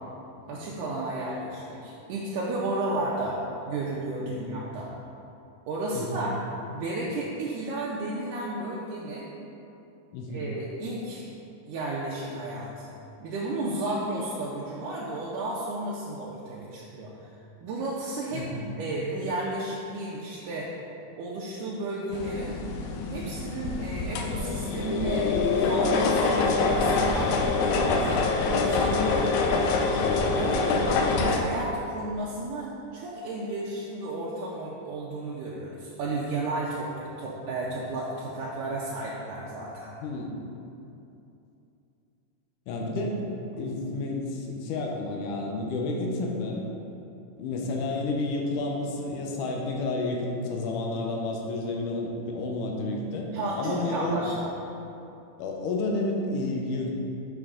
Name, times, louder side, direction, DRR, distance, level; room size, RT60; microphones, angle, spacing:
voice 1, 0.5-4.9 5.7-6.4 6.7-9.3 10.3-11.2 11.7-13.0 13.2-18.5 18.8-20.7 21.2-22.6 23.1-25.3 25.7-29.3 30.3-39.9 53.3-54.5, right 2 dB, 80° right, -5 dB, 2.1 m, -33 dB
voice 2, 4.2-4.6 5.9-6.3 10.1-10.5 18.3-18.7 40.0-40.4 42.7-43.2 43.6-46.6 47.4-53.3 53.6-54.2 55.4-56.9, left 2 dB, 75° left, 0 dB, 2.1 m, -31 dB
sound 1, 22.1-31.4, left 4 dB, 90° left, 1.6 m, -25 dB
6.9 x 6.2 x 3.7 m, 2.8 s
omnidirectional pair, 4.1 m